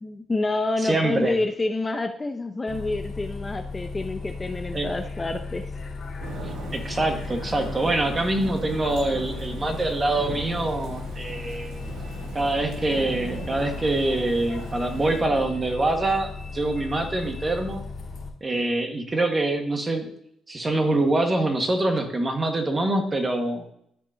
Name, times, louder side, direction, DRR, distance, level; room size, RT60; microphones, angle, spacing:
voice 1, 0.0-5.7, left 2 dB, 25° left, 7 dB, 0.6 m, -28 dB
voice 2, 0.8-1.4 4.7-4.9 6.7-11.8 12.3-17.8 18.4-20.1 20.5-23.6, right 2 dB, 25° right, 4 dB, 1.6 m, -25 dB
Bus, 2.7-18.3, left 4 dB, 50° left, 2.5 m, -36 dB
Thunder / Rain, 6.2-15.2, right 2 dB, 90° right, 3.1 m, -39 dB
13.5 x 5.3 x 2.8 m, 0.72 s
cardioid pair, 90°, 0 cm